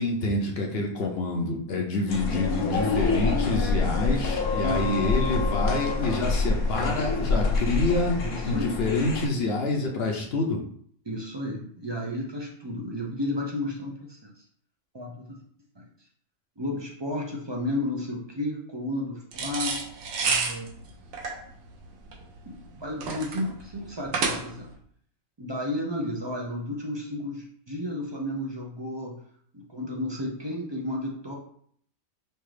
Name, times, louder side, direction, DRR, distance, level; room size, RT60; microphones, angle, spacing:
voice 1, 0.0-8.2 8.5-10.6, left 2 dB, 55° left, 1 dB, 0.8 m, -27 dB
sound 1, 2.1-9.3, left 3 dB, 85° left, 1.2 m, -26 dB
voice 2, 4.6-5.1 8.2-8.7 11.1-14.4 14.9-15.4 15.8-15.9 16.6-19.8 20.2-20.8 22.4-24.7 25.4-29.2 29.5-31.3, left 1 dB, 45° right, -1 dB, 0.3 m, -32 dB
sound 2, 19.3-24.7, right 5 dB, 75° right, 1.2 m, -30 dB
5.5 x 2.4 x 3.2 m, 0.62 s
omnidirectional pair, 1.4 m